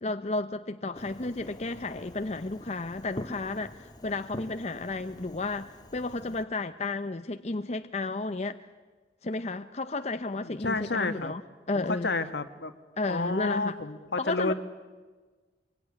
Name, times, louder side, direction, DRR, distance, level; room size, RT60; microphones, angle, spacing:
voice 1, 0.0-8.6 9.2-11.4 11.7-12.1 13.0-13.7 14.2-14.5, left 3 dB, 40° left, 0.7 m, -32 dB
Fireworks, 0.9-6.4, left 1 dB, 25° left, 1.6 m, -45 dB
voice 2, 10.4-11.3 11.7-12.7 13.1-14.5, left 3 dB, 75° left, 1.6 m, -30 dB
25.0 x 22.5 x 10.0 m
head